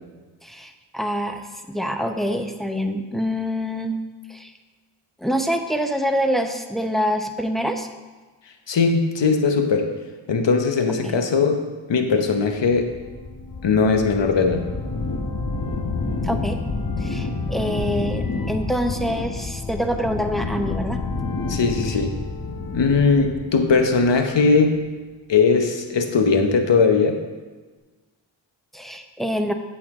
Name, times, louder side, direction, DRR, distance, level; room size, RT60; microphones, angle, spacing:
voice 1, 0.4-4.0 4.3-4.5 5.2-7.9 11.0-11.2 16.2-16.6 17.0-21.0 28.7-29.5, equal, ahead, 5 dB, 0.8 m, -25 dB
voice 2, 8.7-9.9 10.3-11.6 11.9-12.9 13.6-14.6 21.5-22.1 22.7-24.8 25.3-27.2, left 4 dB, 65° left, 5 dB, 1.0 m, -19 dB
sound 1, 12.7-24.5, left 3 dB, 45° left, 1.1 m, -29 dB
8.4 x 7.4 x 3.6 m, 1.3 s
cardioid pair, 45°, 47 cm